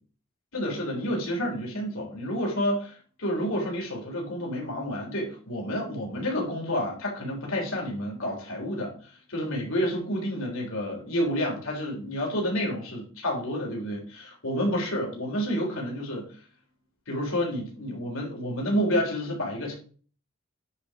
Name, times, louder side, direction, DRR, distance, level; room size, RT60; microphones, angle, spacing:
voice 1, 0.5-16.3 17.1-19.8, equal, 65° left, 3.8 m, -29 dB
10.0 x 5.4 x 4.9 m
head